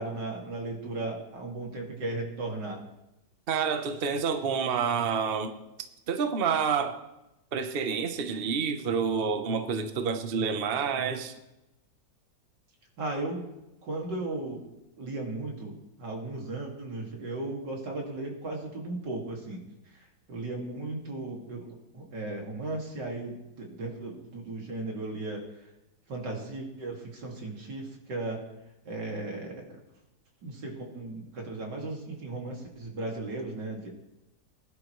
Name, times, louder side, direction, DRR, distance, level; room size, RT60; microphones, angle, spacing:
voice 1, 0.0-2.8 13.0-13.5 13.8-14.6 15.0-19.6 19.9-21.7 21.9-25.4 26.1-28.4 28.9-29.8 30.4-33.9, right 2 dB, 90° right, 0 dB, 3.0 m, -36 dB
voice 2, 3.5-5.5 6.1-7.0 7.5-11.4, right 6 dB, 40° right, 8 dB, 0.9 m, -28 dB
21.0 x 10.5 x 3.1 m, 0.94 s
omnidirectional pair, 1.8 m